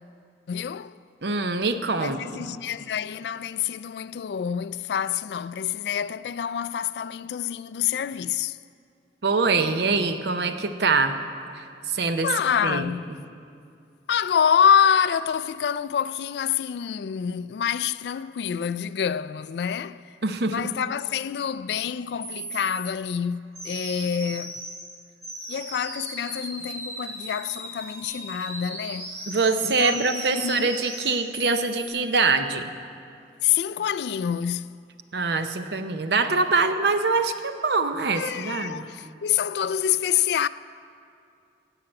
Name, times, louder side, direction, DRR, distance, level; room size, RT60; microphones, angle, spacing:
voice 1, 0.5-1.0 2.0-8.6 12.2-13.1 14.1-20.0 20.5-24.6 25.5-29.1 29.6-30.7 33.4-34.8 38.2-40.5, left 8 dB, 70° left, 0.3 m, -26 dB
voice 2, 1.2-2.5 9.2-11.2 11.5-12.3 12.6-12.9 20.2-20.6 29.3-32.6 35.1-38.9, right 4 dB, 70° right, 0.8 m, -24 dB
sound 1, 21.8-21.9 22.2-22.9 23.6-24.8 25.2-31.9, right 1 dB, 15° right, 2.7 m, -37 dB
16.0 x 5.8 x 8.8 m
head